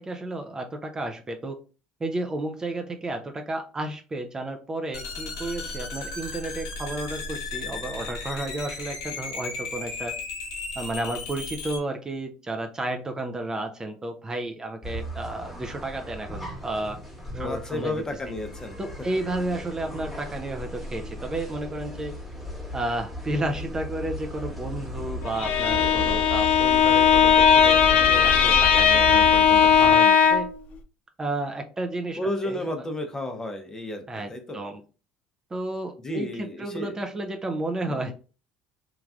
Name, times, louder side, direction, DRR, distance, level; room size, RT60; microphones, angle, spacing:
voice 1, 0.0-1.6 2.0-10.1 10.8-17.0 17.3-18.0 18.8-22.1 22.7-30.5 31.2-32.6 34.1-34.8 35.5-38.1, right 2 dB, 25° right, 5 dB, 0.5 m, -32 dB
sound 1, 4.9-11.8, left 3 dB, 90° left, 0.7 m, -35 dB
sound 2, 14.8-30.0, left 1 dB, ahead, 1.3 m, -35 dB
voice 2, 17.3-18.8 32.2-34.0 34.3-34.6 36.0-37.0 37.8-38.1, left 1 dB, 20° left, 5 dB, 0.7 m, -32 dB
Bowed string instrument, 25.3-30.6, left 8 dB, 60° left, 0.4 m, -18 dB
3.2 x 2.4 x 2.3 m, 0.35 s
hypercardioid pair, 75°, 3 cm